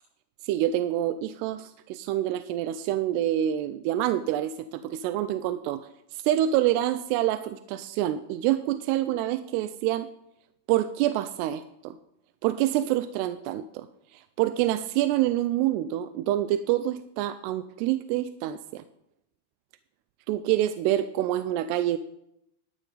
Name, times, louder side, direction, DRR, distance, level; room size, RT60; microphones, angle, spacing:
voice 1, 0.4-10.1 10.7-12.0 12.4-13.9 14.1-18.8 20.3-22.0, right 13 dB, 85° right, 11 dB, 2.5 m, -27 dB
12.0 x 12.0 x 3.9 m, 0.80 s
omnidirectional pair, 5.1 m